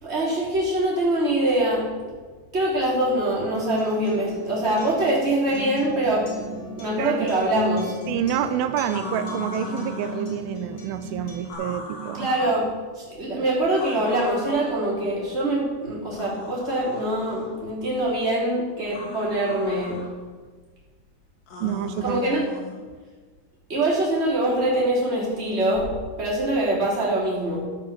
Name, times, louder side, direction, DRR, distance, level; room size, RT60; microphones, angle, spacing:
voice 1, 0.0-2.1 2.5-7.9 12.1-12.7 12.9-20.0 22.0-22.4 23.7-25.9 26.2-27.6, right 1 dB, 20° right, -6 dB, 3.2 m, -24 dB
Acoustic guitar, 3.5-11.5, equal, 45° left, 2.3 m, -36 dB
voice 2, 8.1-12.3 21.6-22.2, right 10 dB, 85° right, 11 dB, 2.4 m, -28 dB
sound 1, 8.9-10.3 11.4-12.6 13.7-14.7 16.1-17.5 18.9-20.1 21.5-22.8, left 3 dB, 65° left, 3.4 m, -38 dB
12.0 x 5.6 x 7.0 m, 1.4 s
omnidirectional pair, 4.3 m